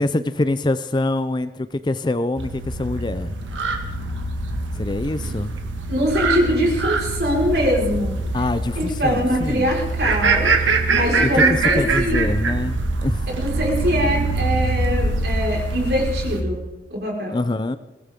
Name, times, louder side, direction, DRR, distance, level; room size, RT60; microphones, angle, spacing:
voice 1, 0.0-3.3 4.7-5.6 8.3-9.7 11.2-11.4 11.8-13.2 17.3-17.8, left 2 dB, 25° left, 13 dB, 0.4 m, -24 dB
sound 1, 2.4-16.4, right 3 dB, 90° right, 1.8 m, -23 dB
voice 2, 5.9-8.2 8.8-10.5 10.9-12.2 13.4-16.6 16.9-17.4, equal, 60° right, -1 dB, 4.7 m, -22 dB
22.0 x 17.0 x 3.6 m, 1.1 s
head